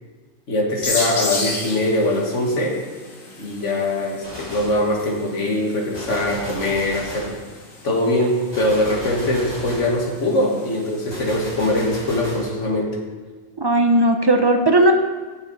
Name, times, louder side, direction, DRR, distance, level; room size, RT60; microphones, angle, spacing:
voice 1, 0.5-2.8 3.4-7.3 7.8-13.0, left 1 dB, 65° left, 0 dB, 1.9 m, -22 dB
sound 1, 0.8-12.2, left 2 dB, 80° left, 2.1 m, -34 dB
Gunshot gunfire, 4.2-4.9 5.9-7.4 8.5-10.0 11.1-12.5, equal, 20° left, 2.9 m, -35 dB
voice 2, 13.6-14.9, right 1 dB, 45° right, 5 dB, 0.3 m, -16 dB
14.0 x 7.0 x 4.0 m, 1.4 s
omnidirectional pair, 1.4 m